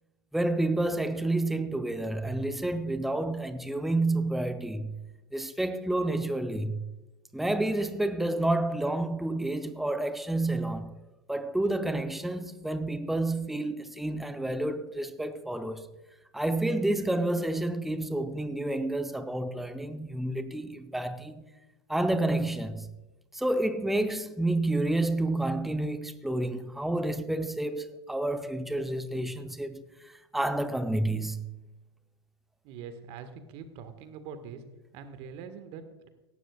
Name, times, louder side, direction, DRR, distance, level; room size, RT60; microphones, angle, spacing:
voice 1, 0.3-5.0 5.3-6.9 7.3-15.9 16.3-21.4 21.9-22.9 23.3-29.8 30.3-31.5, right 1 dB, ahead, 0.6 m, -29 dB
voice 2, 32.6-34.6 34.9-36.1, right 6 dB, 45° right, 1.5 m, -43 dB
17.0 x 12.5 x 2.3 m
hypercardioid pair, 100°, 14 cm